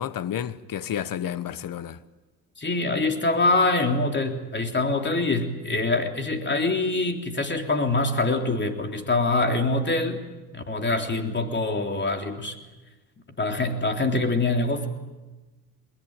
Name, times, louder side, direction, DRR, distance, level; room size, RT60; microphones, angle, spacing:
voice 1, 0.0-2.0, left 10 dB, 50° left, 1.3 m, -31 dB
voice 2, 2.6-10.2 10.5-12.6 13.4-14.9, left 2 dB, 25° left, 3.6 m, -24 dB
22.5 x 21.5 x 9.0 m
supercardioid pair, 75°, 44 cm